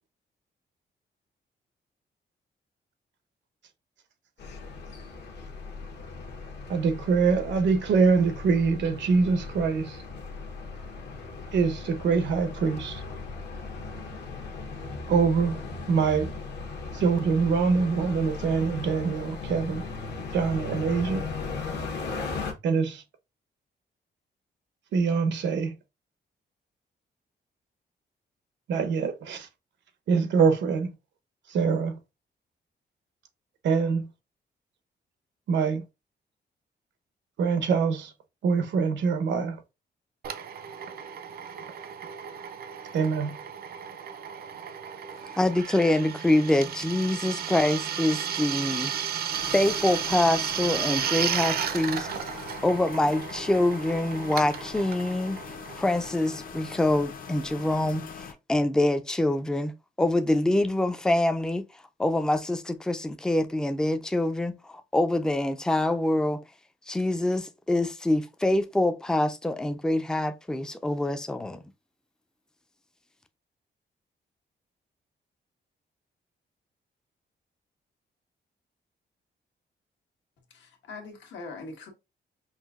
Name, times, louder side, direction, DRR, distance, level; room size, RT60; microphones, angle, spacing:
sound 1, 4.4-22.5, left 4 dB, 70° left, 1.0 m, -37 dB
voice 1, 6.7-10.0 11.5-13.0 15.1-15.6 15.9-16.3 16.9-19.8 20.3-21.3 22.6-23.0 24.9-25.7 28.7-29.5 30.1-30.9 31.5-32.0 33.6-34.1 35.5-35.8 37.4-38.1 38.4-39.6 42.9-43.4, right 5 dB, 90° right, 0.8 m, -24 dB
Drill, 40.2-56.6, right 8 dB, 60° right, 0.5 m, -34 dB
voice 2, 45.4-48.9 49.5-52.1 52.6-55.4 55.8-59.7 60.0-61.7 62.0-66.4 66.9-71.6, left 1 dB, 5° left, 0.3 m, -25 dB
sound 2, 49.3-58.3, left 6 dB, 50° left, 0.6 m, -42 dB
voice 3, 80.6-81.9, left 3 dB, 85° left, 1.3 m, -41 dB
5.6 x 2.6 x 2.4 m
wide cardioid pair, 175°, 18 cm